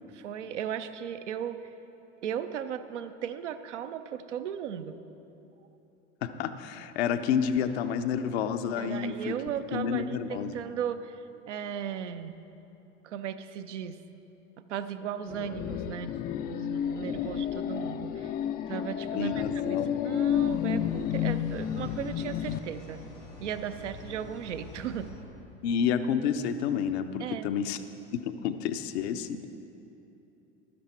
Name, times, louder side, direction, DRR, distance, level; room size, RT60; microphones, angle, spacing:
voice 1, 0.1-1.7 2.2-5.0 8.8-12.4 13.0-14.0 14.6-18.3 18.7-23.0 23.4-25.1 27.2-27.5, right 9 dB, 80° right, 10 dB, 0.6 m, -36 dB
voice 2, 6.2-9.3 9.7-10.6 19.1-19.9 25.6-27.8 28.1-29.4, left 7 dB, 60° left, 9 dB, 0.7 m, -29 dB
sound 1, 15.3-22.6, left 9 dB, 25° left, 0.4 m, -31 dB
sound 2, 20.1-25.1, left 1 dB, 90° left, 2.3 m, -46 dB
12.0 x 10.5 x 4.4 m, 3.0 s
figure-of-eight pair, 75°, 35 cm